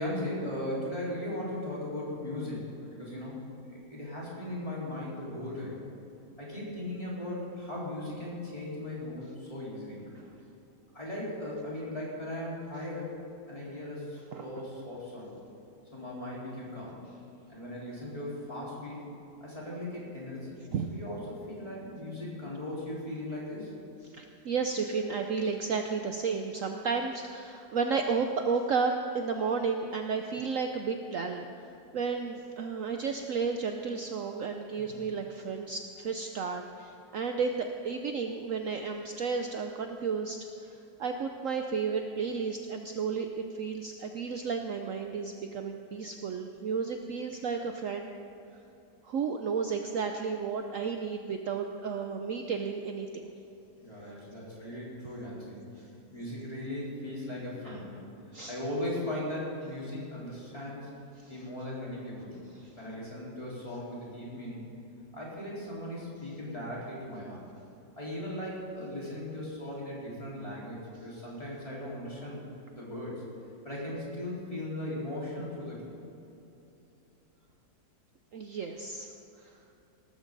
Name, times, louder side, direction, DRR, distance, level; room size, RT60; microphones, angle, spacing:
voice 1, 0.0-2.6 2.9-5.8 6.4-10.0 10.9-13.1 13.5-15.3 15.9-17.0 17.5-19.0 19.4-23.7 34.9-35.0 53.8-55.7 56.1-58.1 58.5-60.9 61.3-62.5 62.8-64.7 65.1-67.4 68.0-72.5 72.7-73.1 73.6-76.0, left 1 dB, 20° left, -7 dB, 4.5 m, -38 dB
voice 2, 14.3-14.6 20.7-20.9 24.1-31.5 31.9-40.4 41.0-48.1 49.0-53.1 57.7-57.8 58.3-58.5 62.6-62.7 78.3-79.1, right 5 dB, 60° right, 4 dB, 1.0 m, -32 dB
18.0 x 14.5 x 4.0 m, 2.9 s
omnidirectional pair, 1.8 m